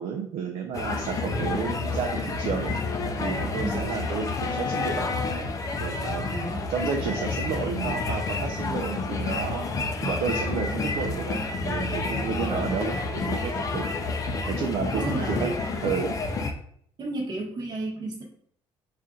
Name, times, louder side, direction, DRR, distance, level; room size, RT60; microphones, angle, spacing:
voice 1, 0.0-2.8 3.2-5.5 5.8-6.3 6.7-9.7 10.0-13.9 14.5-15.5 15.8-16.2, right 6 dB, 70° right, 2 dB, 0.5 m, -31 dB
sound 1, 0.7-16.5, left 3 dB, 30° left, 0.5 m, -29 dB
voice 2, 6.3-6.7 12.4-12.7 14.9-15.6 17.0-18.2, right 2 dB, 40° right, -1 dB, 1.0 m, -32 dB
4.2 x 2.5 x 3.6 m, 0.65 s
cardioid pair, 140°, 11 cm